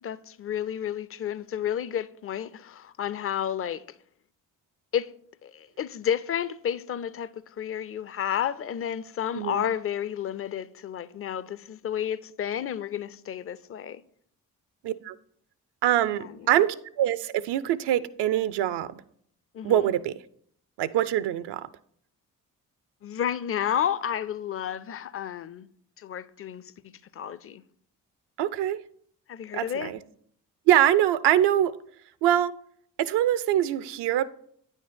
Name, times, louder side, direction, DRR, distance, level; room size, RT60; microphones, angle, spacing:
voice 1, 0.0-3.8 4.9-5.1 5.4-14.0 16.1-16.5 19.5-19.9 23.0-25.7 26.0-26.6 27.1-27.6 29.3-29.9, left 9 dB, 35° left, 0.4 m, -31 dB
voice 2, 14.8-15.2 15.8-19.0 19.6-20.1 20.8-21.7 28.4-28.8 29.5-30.0 30.7-31.7 32.2-32.5 33.0-34.2, right 12 dB, 65° right, 0.6 m, -24 dB
9.2 x 4.3 x 5.1 m
hypercardioid pair, 45°, 43 cm